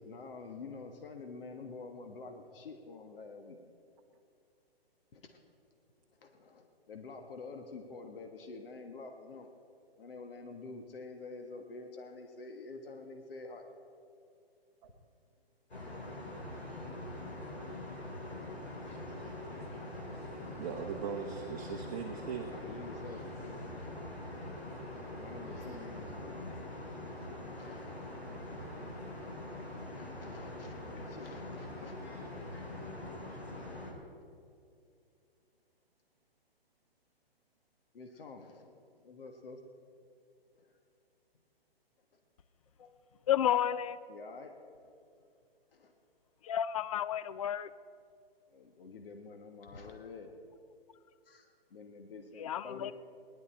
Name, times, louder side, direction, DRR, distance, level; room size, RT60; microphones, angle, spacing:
voice 1, 0.1-3.6 5.1-5.4 6.2-9.5 10.0-13.6 22.5-23.3 25.1-26.5 27.5-27.9 29.9-32.0 37.9-39.6 40.5-40.8 42.8-43.0 44.1-44.5 44.8-44.9 45.7-45.9 48.5-50.3 51.2-52.9, left 3 dB, 60° left, 4 dB, 1.5 m, -48 dB
sound 1, 15.7-33.9, left 1 dB, 85° left, 3.4 m, -43 dB
voice 2, 20.6-22.5, right 7 dB, 35° right, 3 dB, 0.9 m, -39 dB
Splash splatter, 27.9-31.9, left 2 dB, 10° left, 0.8 m, -60 dB
voice 3, 43.3-44.0 46.4-47.7 52.4-52.9, left 10 dB, 35° left, 15 dB, 0.4 m, -31 dB
18.5 x 11.0 x 4.4 m, 2.4 s
figure-of-eight pair, 130°, 31 cm